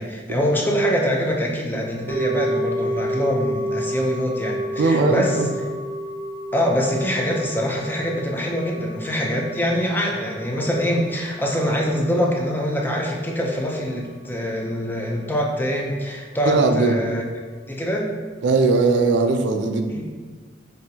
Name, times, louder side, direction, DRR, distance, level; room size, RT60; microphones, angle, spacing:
voice 1, 0.0-5.4 6.5-17.2 17.7-18.1 19.9-20.0, equal, 10° left, -1 dB, 0.5 m, -24 dB
sound 1, 2.1-12.4 12.6-12.7, equal, 90° left, 1.4 m, -30 dB
voice 2, 4.8-5.5 16.5-17.0 18.4-20.0, right 3 dB, 85° right, 6 dB, 0.4 m, -19 dB
5.4 x 2.7 x 2.7 m, 1.5 s
head